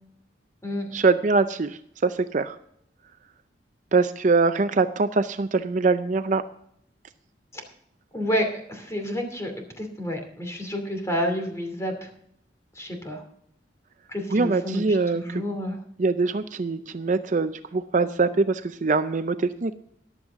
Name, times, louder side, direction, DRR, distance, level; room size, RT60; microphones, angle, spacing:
voice 1, 0.9-2.6 3.9-6.4 14.3-15.4 16.0-19.7, right 3 dB, 45° right, 10 dB, 0.5 m, -23 dB
voice 2, 8.1-9.5 9.8-12.1 12.8-13.2 14.1-14.8 15.1-15.8, equal, 15° left, 4 dB, 2.7 m, -29 dB
14.0 x 11.5 x 3.6 m, 0.69 s
head